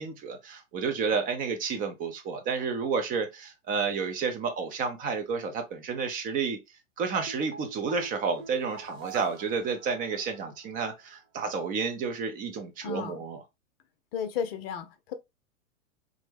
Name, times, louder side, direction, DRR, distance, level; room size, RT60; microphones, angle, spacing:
voice 1, 0.0-6.6 7.0-13.4, right 5 dB, 25° right, 0.5 m, -31 dB
sound 1, 7.1-10.6 10.9-11.0, right 6 dB, 80° right, 0.8 m, -44 dB
voice 2, 12.8-13.2 14.1-15.1, left 7 dB, 50° left, 0.6 m, -33 dB
3.6 x 2.0 x 3.2 m
hypercardioid pair, 105°, 38 cm